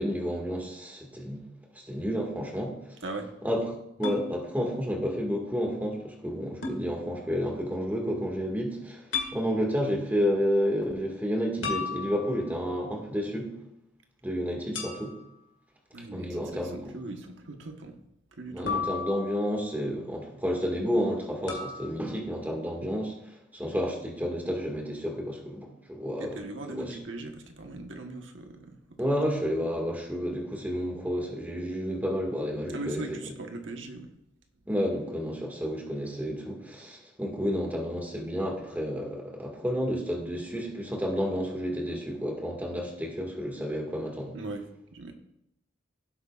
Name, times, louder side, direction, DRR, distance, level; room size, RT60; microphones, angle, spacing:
voice 1, 0.0-1.4 1.7-2.8 3.4-3.6 4.0-9.0 9.3-13.6 14.2-15.2 16.1-16.8 18.5-26.4 26.7-26.9 29.0-33.2 34.7-44.4, equal, 10° right, 0 dB, 2.0 m, -30 dB
voice 2, 3.0-3.3 15.9-18.0 18.3-18.9 26.2-29.1 32.7-34.1 44.3-45.1, right 2 dB, 75° right, 4 dB, 1.3 m, -40 dB
sound 1, 4.0-4.3 6.6-6.8 9.1-9.4 11.6-12.5 14.7-15.4 18.7-19.6 21.5-21.9, left 5 dB, 75° left, 2.1 m, -33 dB
16.5 x 8.1 x 2.5 m, 0.80 s
head